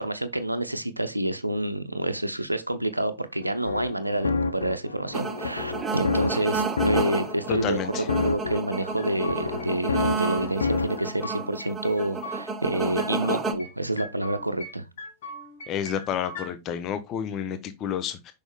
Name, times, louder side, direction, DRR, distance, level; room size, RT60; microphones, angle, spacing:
voice 1, 0.0-14.9, right 1 dB, 85° right, 0.5 m, -28 dB
sound 1, 3.4-11.1, left 4 dB, 70° left, 0.6 m, -30 dB
sound 2, 5.1-13.5, right 4 dB, 20° right, 1.0 m, -31 dB
voice 2, 7.5-8.0 15.7-18.3, left 8 dB, 35° left, 0.7 m, -30 dB
sound 3, 8.7-9.7 10.0-10.7 11.0-12.4 12.7-13.7 14.0-14.7 15.0-16.5, equal, 55° left, 1.8 m, -40 dB
6.2 x 5.2 x 3.5 m
figure-of-eight pair, 90°, 0 cm